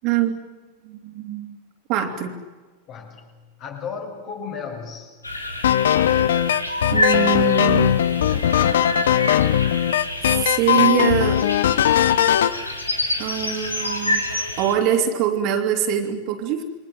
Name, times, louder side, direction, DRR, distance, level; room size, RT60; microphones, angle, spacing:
voice 1, 0.0-0.4 0.8-1.5 1.9-2.3 6.9-8.1 10.2-11.4 13.2-16.6, right 10 dB, 40° right, 5 dB, 3.0 m, -23 dB
voice 2, 2.9-5.2 16.6-16.7, left 6 dB, 40° left, 2 dB, 7.1 m, -35 dB
sound 1, 5.2-14.8, left 1 dB, 85° left, 3.6 m, -28 dB
sound 2, 5.6-12.6, left 10 dB, 60° left, 1.0 m, -19 dB
28.5 x 23.5 x 7.8 m, 1.3 s
figure-of-eight pair, 90°, 0 cm